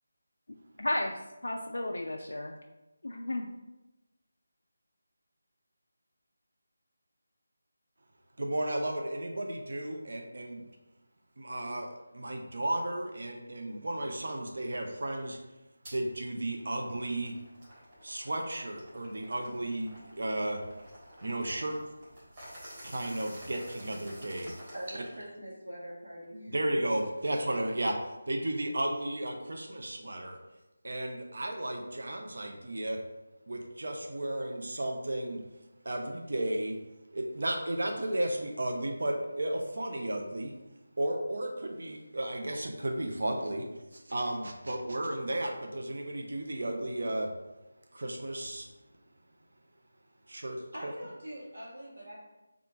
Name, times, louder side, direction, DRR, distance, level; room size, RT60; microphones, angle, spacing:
voice 1, 0.8-2.5 3.0-3.5, left 1 dB, 65° left, 1 dB, 0.3 m, -33 dB
voice 2, 8.4-10.6 11.4-15.4 15.9-17.4 18.0-20.6 21.2-21.8 22.8-24.5 26.5-30.4 30.8-33.0 33.5-35.4 35.8-36.8 37.1-40.5 41.0-43.7 43.9-47.3 47.9-48.7 50.3-50.9, right 1 dB, 60° right, 3 dB, 0.5 m, -34 dB
sound 1, 15.8-16.0 16.5-25.3, equal, 30° right, 1.4 m, -51 dB
voice 3, 24.7-26.5 50.7-52.2, equal, 75° right, -6 dB, 1.4 m, -43 dB
3.7 x 2.4 x 4.4 m, 1.0 s
figure-of-eight pair, 160°, 0 cm